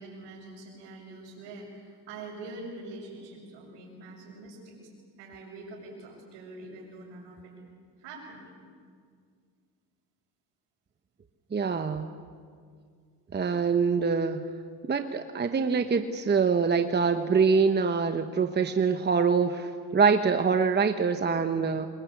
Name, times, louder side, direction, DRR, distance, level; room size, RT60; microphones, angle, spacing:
voice 1, 0.0-4.9 5.2-7.5 8.0-8.4, right 2 dB, 90° right, -5 dB, 6.4 m, -44 dB
voice 2, 11.5-12.1 13.3-14.5 14.9-21.9, right 5 dB, 25° right, 8 dB, 1.1 m, -25 dB
25.5 x 22.0 x 8.5 m, 2.1 s
cardioid pair, 105°, 41 cm